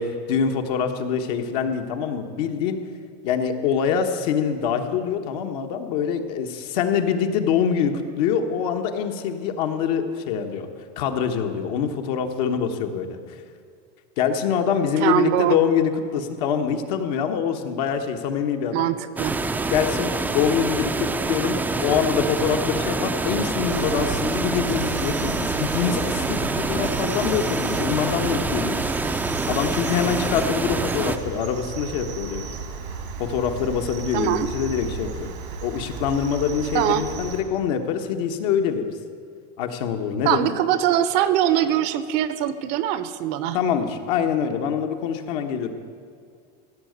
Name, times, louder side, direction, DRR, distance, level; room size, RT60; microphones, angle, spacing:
voice 1, 0.0-2.8 3.2-10.7 11.0-13.2 14.2-18.9 19.7-28.9 29.5-32.4 33.2-35.3 35.6-38.9 39.6-40.5 43.5-45.7, left 7 dB, 70° left, 5 dB, 1.3 m, -25 dB
voice 2, 15.0-15.6 18.7-19.4 34.1-34.5 36.7-37.0 40.2-43.6, right 11 dB, 55° right, 13 dB, 0.8 m, -22 dB
sound 1, 19.2-31.2, right 3 dB, 10° right, 0.4 m, -26 dB
Cricket, 23.7-37.4, right 6 dB, 90° right, 2.3 m, -34 dB
16.0 x 6.6 x 8.0 m, 2.3 s
supercardioid pair, 140°, 21 cm